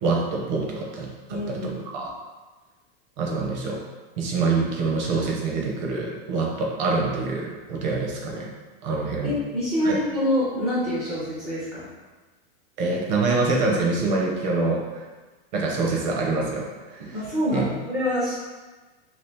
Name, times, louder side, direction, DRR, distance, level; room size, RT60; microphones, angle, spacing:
voice 1, 0.0-2.1 3.2-3.8 4.2-8.5 8.8-9.3 9.8-10.0 12.8-15.0 15.5-17.2 17.5-17.6, right 3 dB, 50° right, -1 dB, 0.7 m, -25 dB
voice 2, 1.3-2.0 9.2-11.9 17.1-18.3, left 1 dB, 10° right, -10 dB, 0.4 m, -26 dB
2.9 x 2.4 x 3.3 m, 1.3 s
supercardioid pair, 165°, 29 cm